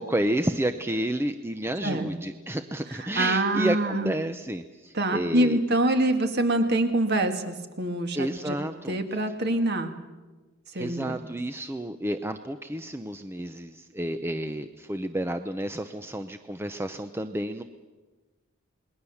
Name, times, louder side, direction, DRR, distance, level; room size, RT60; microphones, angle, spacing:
voice 1, 0.0-5.6 8.1-9.0 10.7-17.6, right 1 dB, 10° right, 8 dB, 0.7 m, -30 dB
voice 2, 3.0-4.1 4.9-8.6 8.9-9.9 10.7-11.2, right 1 dB, 50° right, 6 dB, 2.1 m, -25 dB
28.0 x 21.0 x 7.2 m, 1.3 s
head